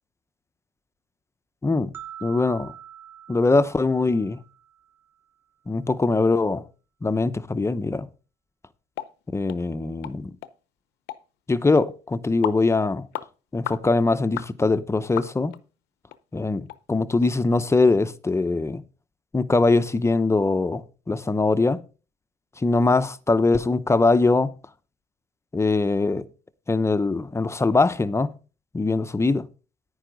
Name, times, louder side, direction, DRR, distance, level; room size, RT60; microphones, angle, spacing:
voice 1, 1.6-1.9 2.2-2.7 3.3-4.4 5.7-6.6 7.0-8.1 9.3-10.3 11.5-13.1 13.5-15.5 16.3-18.8 19.3-21.8 22.6-24.5 25.5-26.2 26.7-28.3 28.7-29.5, left 3 dB, 15° left, 0.7 m, -22 dB
sound 1, 1.9-5.1, right 10 dB, 15° right, 1.2 m, -44 dB
sound 2, 9.0-9.1 9.5-9.6 10.0-10.2 10.4-10.5 11.1-11.2 11.8-11.9 12.4-12.6 13.1-13.3 13.7-13.8 14.4-14.5 15.2-15.6 16.1-16.2 16.7-16.8 17.2-17.3, left 14 dB, 85° left, 0.8 m, -33 dB
10.5 x 9.7 x 3.9 m
cardioid pair, 110°, 17 cm